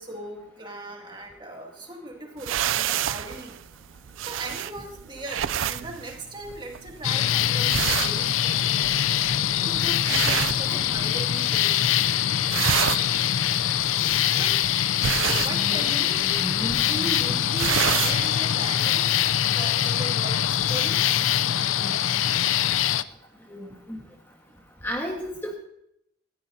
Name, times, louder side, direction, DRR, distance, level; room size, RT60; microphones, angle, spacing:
voice 1, 0.0-3.6 4.3-9.0 9.6-11.9 14.4-14.6 15.1-16.4 16.9-19.1 19.5-21.1 23.4-23.9 24.5-24.6, right 1 dB, 25° right, 1 dB, 2.3 m, -38 dB
sound 1, 2.4-11.4 11.6-12.1 12.3-18.3, right 10 dB, 80° right, 0.4 m, -29 dB
sound 2, 5.0-10.3, right 1 dB, 45° left, 4.7 m, -55 dB
sound 3, 7.0-23.0, left 10 dB, 85° left, 0.5 m, -23 dB
voice 2, 10.6-11.1 14.1-14.4 15.5-15.8 16.4-17.1 21.7-21.9 23.5-24.0 24.8-25.5, equal, 10° left, 0 dB, 1.4 m, -35 dB
19.0 x 14.5 x 2.7 m, 0.76 s
head